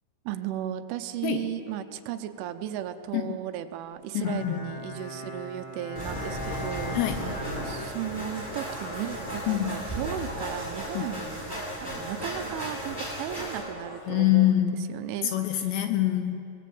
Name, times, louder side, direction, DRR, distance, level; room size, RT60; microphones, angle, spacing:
voice 1, 0.3-7.0 7.6-11.4 11.8-15.7, right 11 dB, 80° right, 9 dB, 3.2 m, -35 dB
voice 2, 4.1-4.6 7.0-7.3 9.5-9.8 10.9-11.1 14.1-14.8 15.3-16.4, left 13 dB, 75° left, 7 dB, 2.7 m, -25 dB
Bowed string instrument, 4.2-10.9, left 1 dB, 45° left, 2.6 m, -40 dB
sound 1, 6.0-13.6, right 1 dB, 10° left, 6.6 m, -35 dB
sound 2, 7.4-7.9 8.6-10.9 11.6-12.7 13.3-14.1 14.4-14.6, left 1 dB, 25° left, 1.8 m, -46 dB
24.0 x 19.0 x 7.8 m, 2.8 s
omnidirectional pair, 5.6 m